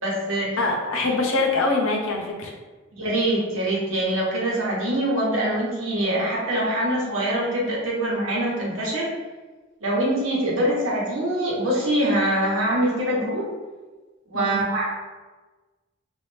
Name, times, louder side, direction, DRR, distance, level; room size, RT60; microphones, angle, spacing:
voice 1, 0.0-0.5 1.1-1.2 3.0-9.1 9.8-13.5 14.3-14.9, right 1 dB, 90° right, -5 dB, 1.1 m, -24 dB
voice 2, 0.6-2.5 14.3-14.6, left 3 dB, 90° left, 0 dB, 0.7 m, -24 dB
3.1 x 2.5 x 3.2 m, 1.3 s
head